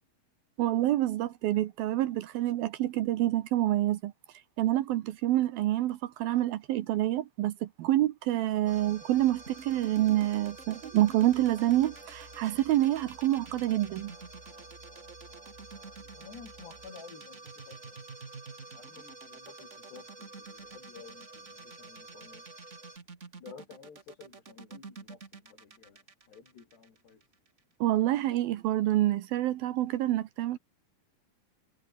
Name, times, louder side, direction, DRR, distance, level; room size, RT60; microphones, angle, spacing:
voice 1, 0.6-4.1 4.6-14.1 27.8-30.6, right 14 dB, 70° right, 2.6 m, -27 dB
sound 1, 8.7-23.0, right 2 dB, 20° right, 4.3 m, -50 dB
sound 2, 9.5-27.6, right 4 dB, 90° right, 0.6 m, -49 dB
voice 2, 16.0-18.1 18.7-22.5 23.4-27.2, left 6 dB, 75° left, 7.2 m, -52 dB
omnidirectional pair, 4.8 m